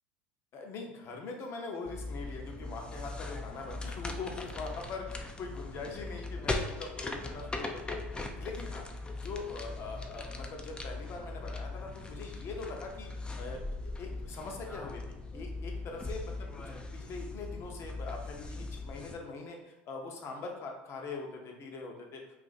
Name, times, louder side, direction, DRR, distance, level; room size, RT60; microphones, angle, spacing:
voice 1, 0.5-8.0 8.4-8.9 9.2-13.1 13.4-16.3 16.7-22.2, left 4 dB, 45° left, 2 dB, 0.7 m, -42 dB
sound 1, 1.9-19.2, left 2 dB, 15° left, 0.4 m, -40 dB
2.5 x 2.4 x 4.0 m, 0.96 s
hypercardioid pair, 85°, 6 cm